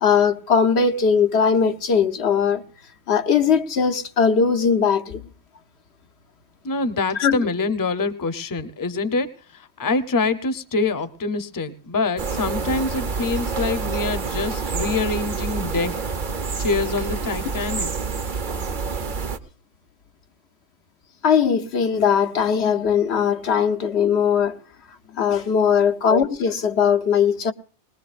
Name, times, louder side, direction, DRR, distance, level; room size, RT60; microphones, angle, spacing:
voice 1, 0.0-2.6 3.1-5.2 7.2-7.4 21.2-24.6 25.2-27.5, left 6 dB, 80° left, 1.2 m, -19 dB
voice 2, 6.6-16.0 16.6-17.9, left 3 dB, 20° left, 0.7 m, -25 dB
sound 1, 12.2-19.4, right 4 dB, 50° right, 1.0 m, -27 dB
21.0 x 20.5 x 2.5 m
omnidirectional pair, 1.1 m